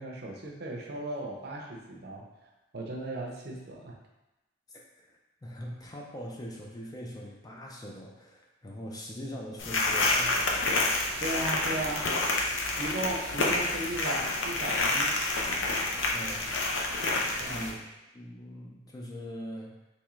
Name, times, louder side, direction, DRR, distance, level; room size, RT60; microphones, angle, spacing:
voice 1, 0.0-4.0 11.2-12.1 12.8-15.2 17.4-17.7, right 1 dB, 55° right, 0 dB, 0.6 m, -36 dB
voice 2, 4.7-10.8 16.1-16.6 17.5-17.8 18.1-19.9, equal, 20° left, -1 dB, 0.4 m, -42 dB
sound 1, 9.6-17.7, left 2 dB, 70° left, 0.6 m, -28 dB
3.6 x 3.1 x 3.1 m, 1.0 s
head